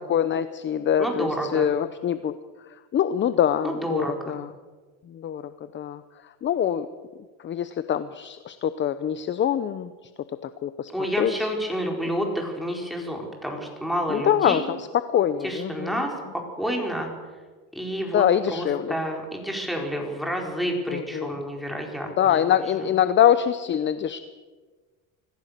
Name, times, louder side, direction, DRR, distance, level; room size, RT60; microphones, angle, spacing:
voice 1, 0.1-2.3 2.9-4.5 5.2-5.4 5.7-6.0 6.4-6.9 7.4-9.9 10.6-10.7 11.2-11.3 14.1-14.8 15.1-15.9 18.1-18.9 20.9-21.3 22.2-24.2, left 9 dB, 30° left, 13 dB, 0.8 m, -23 dB
voice 2, 1.0-1.7 3.6-4.4 10.9-14.6 15.4-17.1 17.7-22.9, equal, ahead, 1 dB, 4.7 m, -29 dB
25.0 x 15.5 x 6.8 m, 1.4 s
supercardioid pair, 120°, 35 cm